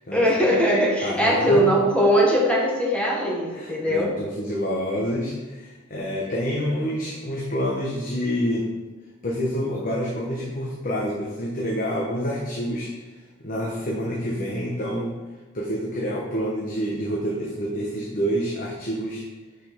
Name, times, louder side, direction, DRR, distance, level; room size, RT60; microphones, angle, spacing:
voice 1, 0.1-4.1, equal, 5° left, -3 dB, 1.3 m, -20 dB
voice 2, 1.0-1.6 3.5-8.7 9.2-12.9 13.4-15.1 15.5-19.2, equal, 40° left, -3 dB, 1.1 m, -27 dB
6.2 x 5.4 x 5.3 m, 1.3 s
head